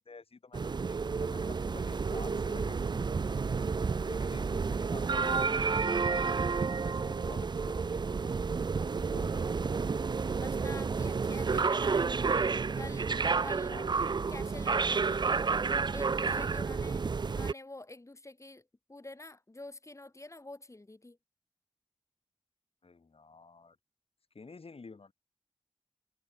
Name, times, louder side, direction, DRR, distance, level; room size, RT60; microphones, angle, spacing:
voice 1, 0.0-3.4 4.0-6.6 6.8-8.1 9.0-9.8 13.7-14.0 22.8-23.8 24.3-25.1, left 4 dB, 70° left, 6.7 m, -50 dB
sound 1, 0.5-17.5, right 5 dB, 45° right, 0.4 m, -30 dB
voice 2, 10.4-12.3 12.7-13.1 13.4-13.7 14.3-15.2 15.9-21.2, left 2 dB, 30° left, 2.8 m, -47 dB
wide cardioid pair, 75°, 10 cm